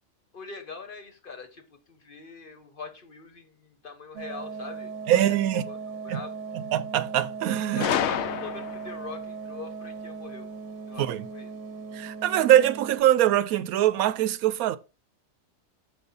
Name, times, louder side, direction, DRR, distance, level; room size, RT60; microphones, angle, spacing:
voice 1, 0.3-5.2 5.5-5.8 6.0-6.3 7.7-10.5 10.9-11.5, left 4 dB, 45° left, 1.0 m, -42 dB
sound 1, 4.2-13.0, right 5 dB, 60° right, 0.9 m, -38 dB
voice 2, 5.1-5.7 6.1-6.2 6.5-7.9 11.0-11.2 11.9-14.8, right 12 dB, 90° right, 1.0 m, -23 dB
Gunshot gunfire, 7.8-9.0, left 9 dB, 65° left, 0.7 m, -28 dB
6.6 x 5.1 x 3.9 m
omnidirectional pair, 1.5 m